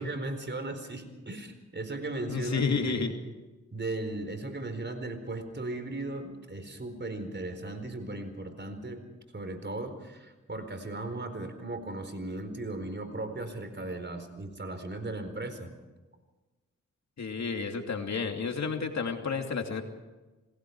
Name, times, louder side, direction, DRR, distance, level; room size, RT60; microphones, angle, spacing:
voice 1, 0.0-3.0 3.7-9.0 9.3-15.7, right 2 dB, 35° right, 8 dB, 4.4 m, -37 dB
voice 2, 2.3-3.2 17.2-19.8, left 5 dB, 65° left, 4 dB, 2.8 m, -31 dB
28.0 x 19.5 x 4.8 m, 1.2 s
cardioid pair, 55°, 30 cm